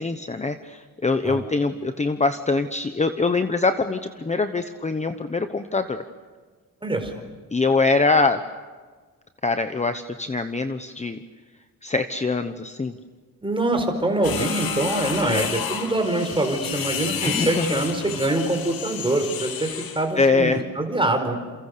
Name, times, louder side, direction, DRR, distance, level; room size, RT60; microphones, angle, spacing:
voice 1, 0.0-6.0 7.5-8.4 9.4-11.2 11.8-12.9 15.2-15.5 17.2-17.8 20.2-20.6, left 3 dB, 20° left, 9 dB, 1.0 m, -23 dB
voice 2, 6.8-7.1 13.4-19.7 19.9-21.4, right 2 dB, 15° right, 4 dB, 4.6 m, -24 dB
sound 1, 14.2-20.1, left 7 dB, 85° left, 2.6 m, -31 dB
29.0 x 28.5 x 6.8 m, 1.5 s
wide cardioid pair, 155°, 34 cm